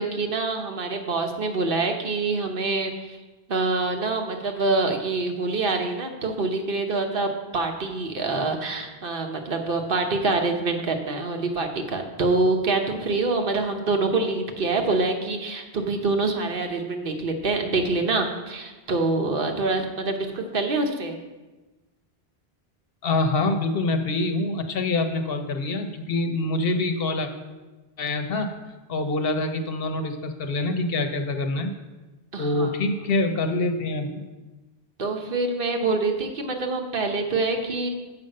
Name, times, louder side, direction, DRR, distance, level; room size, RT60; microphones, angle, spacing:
voice 1, 0.0-3.2 3.5-21.2 32.3-32.7 35.0-37.9, right 3 dB, 60° right, 4 dB, 1.1 m, -25 dB
voice 2, 23.0-27.3 28.0-28.5 28.9-31.7 32.4-34.2, left 2 dB, 65° left, 7 dB, 0.9 m, -25 dB
7.7 x 5.3 x 6.5 m, 1.2 s
omnidirectional pair, 1.1 m